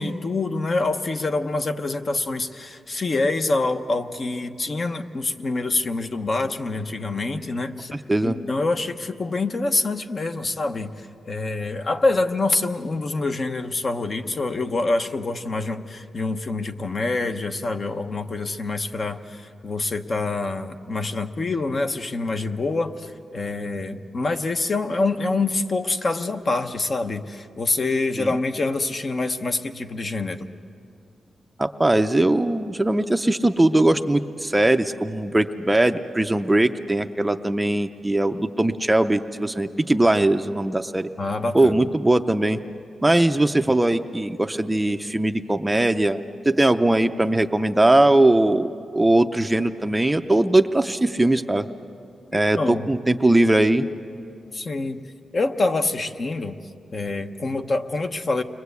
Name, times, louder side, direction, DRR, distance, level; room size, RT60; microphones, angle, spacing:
voice 1, 0.0-7.9 8.2-30.5 41.2-41.9 52.3-52.9 54.5-55.0 55.3-56.6 56.9-58.4, left 3 dB, 40° left, 7 dB, 0.9 m, -26 dB
voice 2, 7.9-8.4 28.2-28.3 31.6-41.1 41.5-42.6 43.0-51.7 52.3-53.9, right 1 dB, 10° right, 8 dB, 0.6 m, -20 dB
29.5 x 22.5 x 8.3 m, 2.6 s
wide cardioid pair, 130°, 0 cm